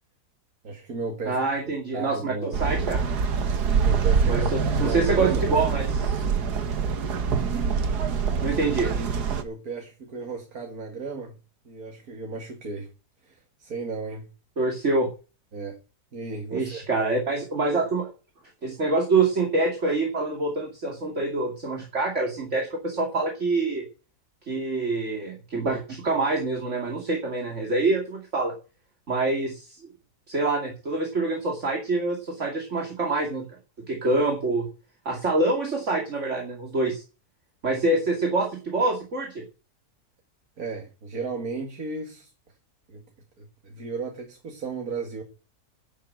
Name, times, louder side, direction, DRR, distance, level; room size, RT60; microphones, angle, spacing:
voice 1, 0.6-1.4 1.9-2.5 3.8-5.5 7.5-7.9 9.4-11.4 11.6-12.9 13.2-14.3 15.5-15.8 16.1-16.9 40.6-42.3 42.9-43.0 43.4-45.2, right 4 dB, 65° right, 2.4 m, -34 dB
voice 2, 1.3-3.0 4.3-6.2 8.4-8.9 14.6-15.1 16.5-18.1 18.6-23.8 24.5-28.5 29.1-29.8 30.3-33.5 33.9-34.7 35.0-37.0 37.6-39.4, right 3 dB, 45° right, 2.9 m, -26 dB
sound 1, 2.5-9.4, right 6 dB, 80° right, 1.9 m, -25 dB
11.5 x 7.5 x 7.7 m
omnidirectional pair, 1.7 m